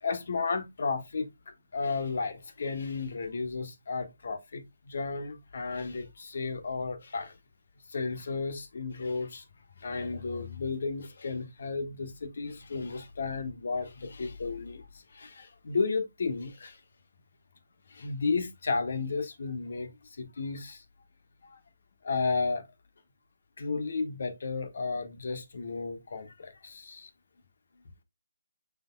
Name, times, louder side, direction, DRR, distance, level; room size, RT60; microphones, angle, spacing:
voice 1, 0.0-7.3 7.9-9.4 9.8-14.8 15.1-16.8 17.9-19.9 20.2-20.8 21.4-21.6 22.0-22.7 23.6-27.1, left 4 dB, 55° left, 1.4 m, -33 dB
6.8 x 6.2 x 2.3 m
figure-of-eight pair, 140°, 0 cm